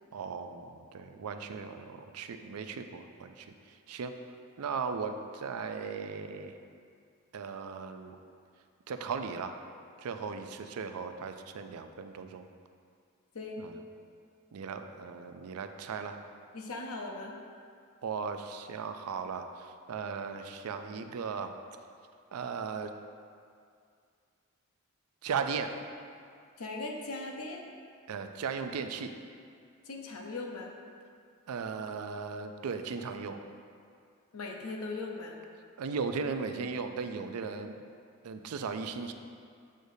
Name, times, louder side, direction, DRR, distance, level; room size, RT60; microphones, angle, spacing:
voice 1, 0.1-4.1 4.6-6.6 7.3-8.2 8.9-9.6 10.0-12.4 13.6-13.7 14.5-16.2 18.0-21.6 22.3-22.9 25.2-25.8 28.1-29.1 31.5-33.4 35.8-37.8 38.2-39.1, right 5 dB, 90° right, 7 dB, 0.4 m, -37 dB
voice 2, 16.5-17.4 26.6-27.6 29.8-30.7 34.3-35.4, left 3 dB, 80° left, 1 dB, 0.7 m, -39 dB
6.4 x 6.4 x 2.7 m, 2.3 s
head